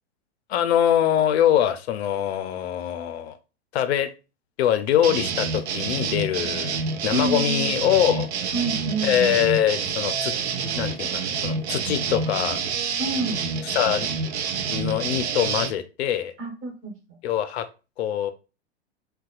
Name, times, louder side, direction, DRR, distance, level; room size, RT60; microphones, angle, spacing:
voice 1, 0.5-3.4 3.7-4.1 4.6-6.8 7.0-8.3 9.0-10.3 10.7-12.6 13.7-14.1 14.7-16.3 17.2-17.6 18.0-18.3, left 10 dB, 65° left, 11 dB, 0.5 m, -23 dB
sound 1, 5.0-15.7, right 5 dB, 70° right, 0.6 m, -28 dB
voice 2, 7.1-7.7 8.5-9.3 13.0-13.6 16.4-16.9, right 3 dB, 35° right, 1 dB, 1.4 m, -28 dB
3.9 x 2.2 x 2.3 m, 0.31 s
hypercardioid pair, 95°, 34 cm